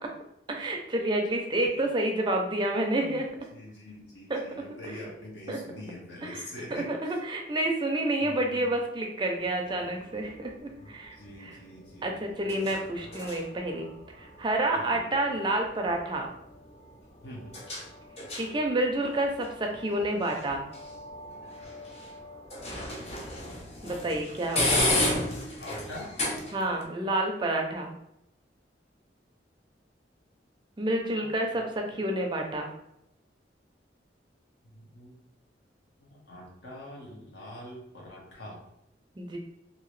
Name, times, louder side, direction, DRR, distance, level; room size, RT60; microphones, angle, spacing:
voice 1, 0.5-3.3 4.3-4.4 5.5-5.6 6.2-11.5 12.0-13.9 14.2-16.3 18.4-20.6 23.8-24.9 26.5-27.9 30.8-32.7 39.2-39.4, right 1 dB, 25° right, 2 dB, 0.4 m, -29 dB
voice 2, 3.5-7.2 8.2-8.7 10.8-13.1 14.7-15.1 17.2-17.6 24.6-25.0 25.6-26.1 31.1-31.3 31.9-32.0 34.7-35.1 36.0-38.6, left 1 dB, 75° left, -3 dB, 1.0 m, -44 dB
sound 1, 9.4-26.8, left 1 dB, 35° left, 0.6 m, -35 dB
2.8 x 2.7 x 3.0 m, 0.81 s
head